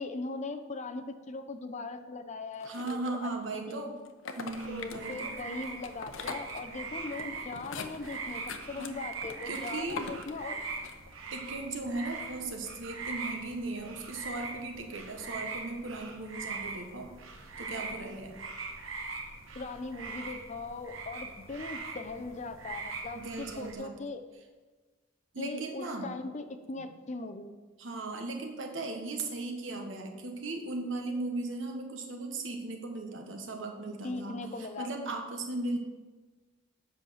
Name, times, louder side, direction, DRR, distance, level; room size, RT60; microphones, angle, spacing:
voice 1, 0.0-3.3 3.7-3.8 4.7-8.4 8.7-10.6 19.5-24.2 25.4-27.5 34.0-34.9, left 3 dB, 35° left, 7 dB, 0.6 m, -39 dB
sound 1, 2.6-3.5 4.1-11.2, left 4 dB, 80° left, 0.7 m, -43 dB
voice 2, 2.6-3.9 4.4-5.3 8.8-8.9 9.5-10.1 11.3-17.1 17.6-18.4 23.1-23.9 25.3-26.1 26.8-26.9 27.8-35.8, right 2 dB, 75° right, 3 dB, 1.3 m, -37 dB
sound 2, 4.5-23.7, right 4 dB, 90° right, 1.1 m, -42 dB
7.9 x 5.7 x 6.3 m, 1.3 s
head